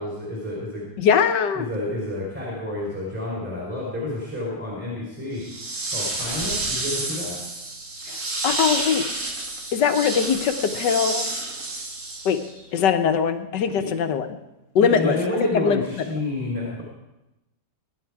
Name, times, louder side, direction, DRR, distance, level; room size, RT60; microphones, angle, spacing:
voice 1, 0.0-0.9 1.6-5.4 5.9-7.4 13.7-13.9 14.8-16.8, left 2 dB, 5° right, -5 dB, 3.5 m, -29 dB
voice 2, 1.0-1.7 8.1-9.0 9.7-11.3 12.2-12.4 12.7-14.3 14.7-15.2 15.5-15.8, left 7 dB, 80° left, 9 dB, 1.6 m, -21 dB
sound 1, 5.4-12.6, right 2 dB, 55° right, 2.8 m, -30 dB
21.5 x 10.5 x 4.8 m, 0.98 s
omnidirectional pair, 1.9 m